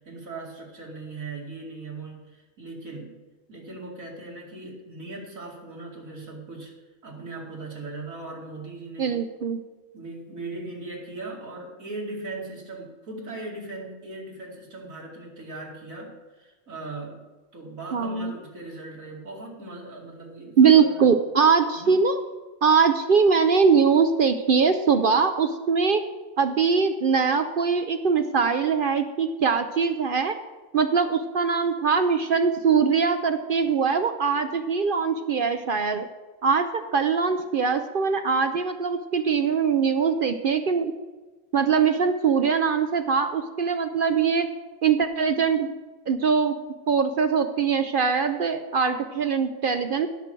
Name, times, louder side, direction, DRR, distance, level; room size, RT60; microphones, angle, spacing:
voice 1, 0.0-3.2 3.5-6.7 7.0-9.2 9.9-17.2 17.5-21.1 21.7-22.0, right 2 dB, 85° right, -1 dB, 2.8 m, -39 dB
voice 2, 9.0-9.6 17.9-18.3 20.6-22.2 22.6-26.0 26.4-30.4 30.7-36.1 36.4-40.9 41.5-44.5 44.8-45.7 46.1-46.5 46.9-50.1, right 5 dB, 55° right, 8 dB, 0.6 m, -22 dB
17.0 x 6.4 x 4.5 m, 1.2 s
omnidirectional pair, 1.4 m